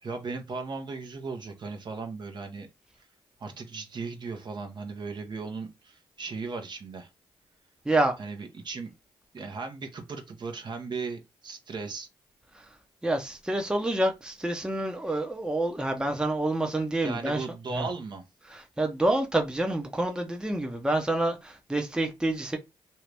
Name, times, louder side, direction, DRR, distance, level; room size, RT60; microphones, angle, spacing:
voice 1, 0.0-2.7 3.0-3.1 3.4-7.1 8.2-8.9 9.3-12.1 17.0-18.2, right 4 dB, 50° right, 0.8 m, -37 dB
voice 2, 13.0-17.4 17.7-17.9 18.5-22.6, right 1 dB, 10° right, 0.7 m, -28 dB
2.7 x 2.5 x 3.3 m
supercardioid pair, 55°, 10 cm